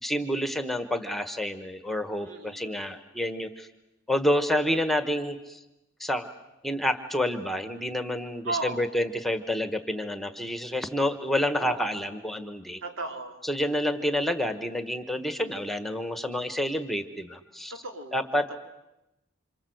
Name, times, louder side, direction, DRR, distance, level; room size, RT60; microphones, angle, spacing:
voice 1, 0.0-3.7 4.1-5.6 6.0-6.3 6.6-12.8 13.4-17.7 18.1-18.4, left 1 dB, ahead, 9 dB, 1.3 m, -28 dB
voice 2, 2.2-3.0 8.4-9.0 11.6-12.0 12.8-13.4 17.7-18.6, right 2 dB, 75° right, 5 dB, 3.2 m, -36 dB
28.5 x 26.5 x 7.9 m, 0.94 s
head